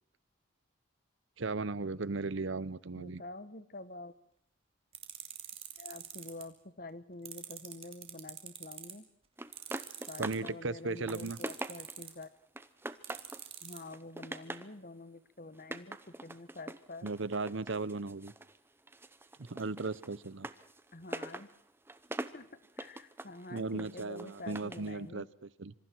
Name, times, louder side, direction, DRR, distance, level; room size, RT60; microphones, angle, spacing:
voice 1, 1.4-3.2 10.2-11.4 17.0-18.3 19.5-20.5 23.5-25.7, right 3 dB, 65° right, 18 dB, 0.8 m, -36 dB
voice 2, 2.9-4.1 5.8-9.0 10.1-12.3 13.6-17.1 20.9-21.5 22.3-22.5 22.8-25.3, left 2 dB, 45° left, 14 dB, 1.2 m, -47 dB
sound 1, 4.9-6.4 7.2-8.9 9.5-10.3 11.1-12.2 13.0-13.8, right 9 dB, 30° right, 3.0 m, -44 dB
sound 2, 9.4-10.5 10.9-12.1 12.6-13.5 13.9-14.7 15.6-18.6 18.9-24.9, right 2 dB, 10° right, 0.8 m, -44 dB
26.0 x 25.5 x 4.6 m, 0.72 s
head